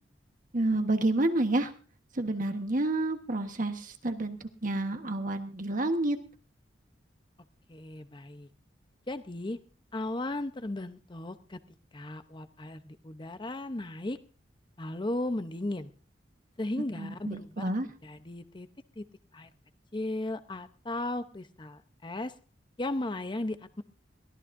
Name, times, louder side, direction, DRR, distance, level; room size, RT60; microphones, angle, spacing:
voice 1, 0.5-1.7 2.1-6.2 17.0-17.9, right 2 dB, 45° right, 6 dB, 1.3 m, -29 dB
voice 2, 7.7-8.5 9.1-9.6 9.9-11.6 11.9-14.2 14.8-15.9 16.6-17.7 18.0-18.7 19.0-19.1 19.3-19.5 19.9-22.3 22.8-23.8, left 1 dB, 25° left, 11 dB, 0.8 m, -36 dB
22.5 x 16.0 x 2.6 m, 0.39 s
head